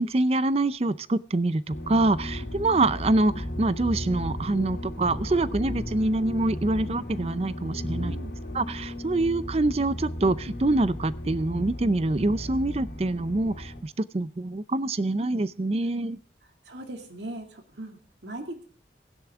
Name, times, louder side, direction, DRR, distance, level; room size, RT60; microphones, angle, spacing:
voice 1, 0.0-8.1 8.5-16.2, right 2 dB, 35° right, 17 dB, 0.5 m, -25 dB
sound 1, 1.7-13.8, left 1 dB, 85° left, 2.9 m, -35 dB
voice 2, 7.9-8.3 16.7-18.6, right 1 dB, 75° right, 4 dB, 2.3 m, -39 dB
15.5 x 10.5 x 3.6 m, 0.44 s
head